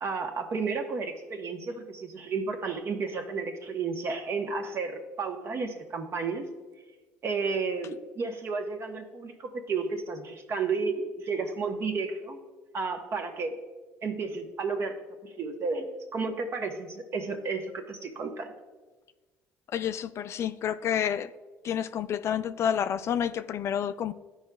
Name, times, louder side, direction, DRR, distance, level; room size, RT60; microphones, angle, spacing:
voice 1, 0.0-6.5 7.2-12.4 12.7-13.5 14.0-15.0 15.2-18.5, right 4 dB, 45° right, 1.0 m, -32 dB
voice 2, 19.7-21.3 21.6-24.1, left 9 dB, 50° left, 0.3 m, -29 dB
12.5 x 4.9 x 2.3 m
supercardioid pair, 75°, 6 cm